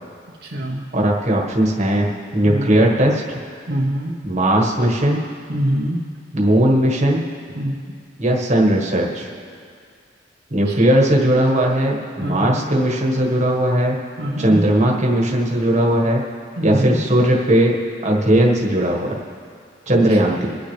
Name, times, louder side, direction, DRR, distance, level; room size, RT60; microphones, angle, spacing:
voice 1, 0.4-0.9 2.4-2.8 3.7-4.2 5.5-6.0 7.5-7.8 10.6-10.8 12.2-12.6 14.2-14.6 16.6-17.0 20.1-20.4, equal, 60° right, -3 dB, 1.1 m, -24 dB
voice 2, 0.9-3.2 4.2-5.2 6.3-7.2 8.2-9.3 10.5-14.0 14.4-16.2 16.6-17.8 18.0-19.2 19.9-20.6, right 1 dB, 35° right, -1 dB, 1.6 m, -18 dB
24.0 x 9.1 x 3.4 m, 2.2 s
head